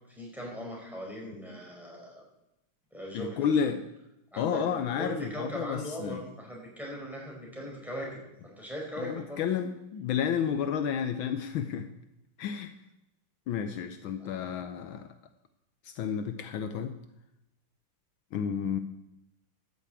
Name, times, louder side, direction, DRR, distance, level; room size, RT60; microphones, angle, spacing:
voice 1, 0.1-2.2 2.9-3.5 4.3-4.6 5.0-9.4 14.2-14.4, equal, ahead, -2 dB, 4.6 m, -39 dB
voice 2, 3.1-3.8 4.4-6.2 9.0-11.9 12.4-12.7 13.5-15.0 15.9-16.9 18.3-18.8, left 7 dB, 75° left, 9 dB, 1.5 m, -31 dB
13.0 x 7.1 x 8.2 m, 0.88 s
omnidirectional pair, 2.3 m